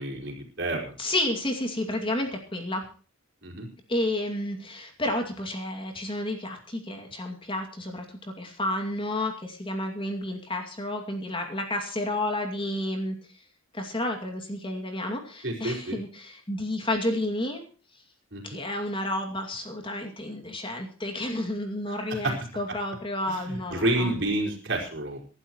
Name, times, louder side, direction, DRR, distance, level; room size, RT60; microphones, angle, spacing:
voice 1, 0.0-0.9 3.4-3.7 15.4-16.0 18.3-18.6 22.1-22.4 23.3-25.2, right 1 dB, 55° right, 0 dB, 4.8 m, -29 dB
voice 2, 1.0-2.8 3.9-8.1 8.4-13.2 13.7-17.6 18.4-24.1, left 1 dB, 25° left, 3 dB, 2.4 m, -31 dB
24.5 x 12.0 x 3.1 m, 0.39 s
head